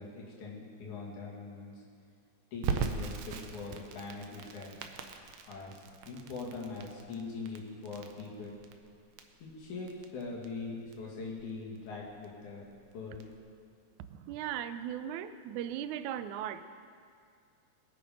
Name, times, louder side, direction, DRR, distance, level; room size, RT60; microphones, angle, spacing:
voice 1, 0.0-1.7 2.5-4.8 5.5-8.6 9.4-12.6 12.9-13.2, left 3 dB, 85° left, -3 dB, 3.6 m, -42 dB
Crackle, 2.6-13.4, right 6 dB, 70° right, 2.0 m, -41 dB
voice 2, 14.1-16.6, right 10 dB, 85° right, 12 dB, 2.0 m, -37 dB
21.5 x 8.6 x 5.2 m, 2.3 s
omnidirectional pair, 3.4 m